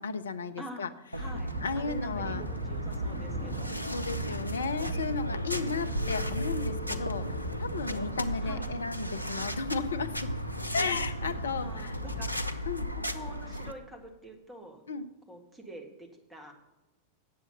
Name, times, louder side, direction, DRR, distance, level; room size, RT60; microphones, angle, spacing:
voice 1, 0.0-0.9 1.6-2.4 3.6-10.3 10.7-11.9 12.7-12.9 14.9-15.1, left 4 dB, 70° left, 11 dB, 0.6 m, -34 dB
voice 2, 0.6-3.7 8.4-8.7 11.6-12.4 13.1-14.8 15.3-16.5, right 1 dB, 5° right, 2 dB, 1.8 m, -46 dB
sound 1, 1.1-13.7, right 1 dB, 90° right, 0.5 m, -35 dB
Thunder, 1.2-12.4, equal, 20° right, 2.3 m, -41 dB
sound 2, 5.9-13.8, left 4 dB, 50° left, 0.9 m, -46 dB
8.5 x 7.5 x 6.4 m, 1.1 s
figure-of-eight pair, 90°, 0 cm